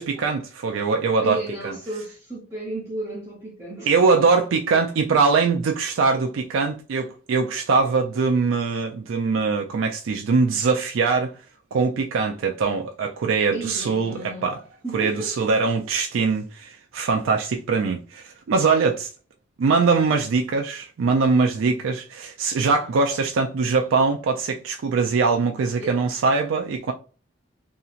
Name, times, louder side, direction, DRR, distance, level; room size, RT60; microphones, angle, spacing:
voice 1, 0.0-1.8 3.9-11.4 11.7-14.6 14.9-19.1 19.6-26.9, right 4 dB, 80° right, 0.4 m, -22 dB
voice 2, 1.2-3.9 13.5-14.5 14.8-15.5 25.8-26.0, right 2 dB, 15° right, 0.8 m, -33 dB
2.8 x 2.8 x 2.4 m
head